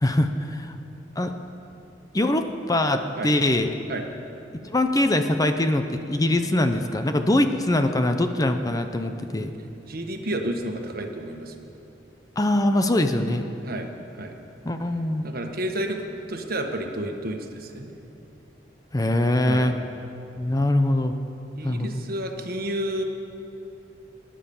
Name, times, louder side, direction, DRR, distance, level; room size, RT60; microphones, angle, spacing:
voice 1, 0.0-0.7 1.2-1.3 2.1-3.7 4.6-5.8 6.1-9.5 12.4-13.4 14.6-15.3 18.9-19.7 20.4-21.1 21.6-22.0, left 1 dB, 20° left, 7 dB, 0.7 m, -22 dB
voice 2, 9.9-11.5 13.6-14.3 15.2-17.9 19.4-19.8 21.6-23.0, right 1 dB, 55° right, 4 dB, 1.4 m, -31 dB
20.5 x 10.0 x 7.1 m, 2.9 s
head